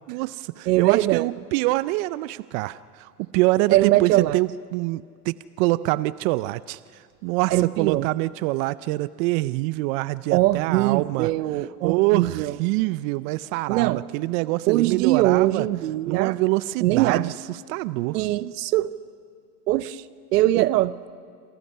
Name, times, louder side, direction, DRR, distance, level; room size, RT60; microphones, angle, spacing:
voice 1, 0.1-11.3 11.8-15.7 16.1-18.2 20.6-20.7, right 19 dB, 60° right, 17 dB, 0.6 m, -25 dB
voice 2, 0.7-1.3 3.7-4.4 7.5-8.1 10.3-12.6 13.7-14.0 14.7-16.4 16.8-17.3 18.1-18.9 19.7-20.0 20.3-20.9, right 16 dB, 80° right, 16 dB, 1.0 m, -21 dB
28.0 x 27.5 x 5.6 m, 2.3 s
supercardioid pair, 115°, 47 cm